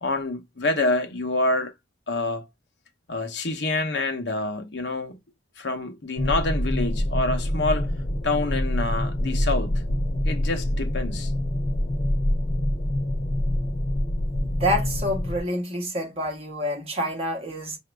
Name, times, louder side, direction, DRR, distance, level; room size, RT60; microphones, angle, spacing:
voice 1, 0.0-1.7 2.1-2.5 3.1-5.2 5.6-7.9 8.2-9.8 10.2-11.3, left 2 dB, 70° left, 0.9 m, -27 dB
sound 1, 6.2-15.4, left 1 dB, 40° left, 0.6 m, -26 dB
voice 2, 14.4-17.8, equal, 35° right, 1.4 m, -27 dB
4.9 x 2.7 x 3.3 m
head